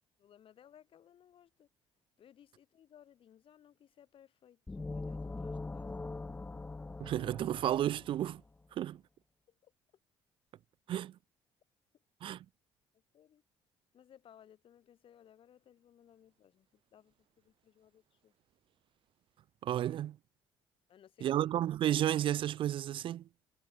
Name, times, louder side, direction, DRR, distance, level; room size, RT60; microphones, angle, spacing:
voice 1, 0.2-1.7 2.2-4.6 4.9-6.0 9.6-9.7 12.9-13.4 13.9-18.3 20.9-21.4, left 10 dB, 60° left, 7.3 m, -61 dB
sound 1, 4.7-8.4, left 3 dB, 15° left, 0.9 m, -42 dB
voice 2, 7.0-8.4 8.7-9.0 10.9-11.1 12.2-12.4 19.6-20.2 21.2-23.2, right 12 dB, 55° right, 0.4 m, -32 dB
supercardioid pair, 80°, 10 cm